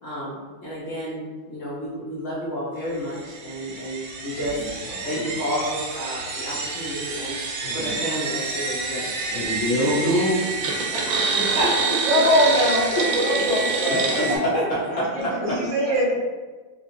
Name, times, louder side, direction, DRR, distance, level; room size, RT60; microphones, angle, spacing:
voice 1, 0.0-7.4 7.6-10.8 11.3-12.2 13.0-13.1 14.0-14.8, equal, 70° left, -8 dB, 0.7 m, -28 dB
sound 1, 3.2-14.4, right 4 dB, 85° right, 1.4 m, -27 dB
voice 2, 10.9-11.5 14.0-14.4 14.7-16.1, equal, 25° left, -8 dB, 0.9 m, -37 dB
voice 3, 12.1-14.6 15.2-16.1, equal, 70° right, -6 dB, 0.5 m, -22 dB
3.5 x 2.8 x 2.6 m, 1.3 s
omnidirectional pair, 2.1 m